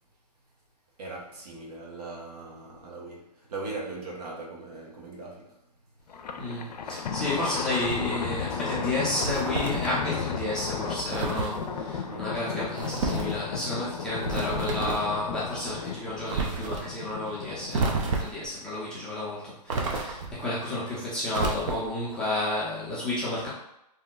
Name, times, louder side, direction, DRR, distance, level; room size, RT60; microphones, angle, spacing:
voice 1, 1.0-5.6 12.0-12.7, right 3 dB, 70° right, 0.9 m, -40 dB
Thunder, 6.1-17.9, left 6 dB, 75° left, 0.4 m, -34 dB
voice 2, 6.4-23.5, left 2 dB, 5° left, 0.5 m, -31 dB
sound 1, 9.2-10.0 11.1-11.6 12.8-13.3 14.2-15.1 16.3-16.8 17.7-18.5 19.7-20.4 21.3-22.0, right 3 dB, 50° right, 0.6 m, -30 dB
2.7 x 2.1 x 3.6 m
hypercardioid pair, 155°, 21 cm